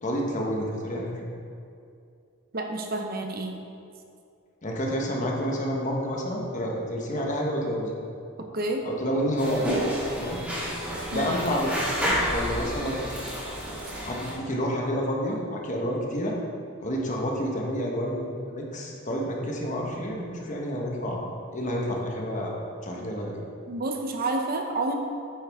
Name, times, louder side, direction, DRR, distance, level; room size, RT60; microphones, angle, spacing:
voice 1, 0.0-1.2 4.6-7.9 8.8-9.8 10.1-10.4 11.1-13.1 14.0-16.4 16.8-22.5 22.8-23.3, equal, 35° left, -1 dB, 1.2 m, -29 dB
voice 2, 2.5-3.6 8.4-8.9 11.1-11.3 23.7-25.0, right 2 dB, 45° right, 3 dB, 0.7 m, -29 dB
sound 1, 9.4-14.3, equal, 5° right, 1.7 m, -30 dB
9.3 x 7.6 x 3.6 m, 2.4 s
head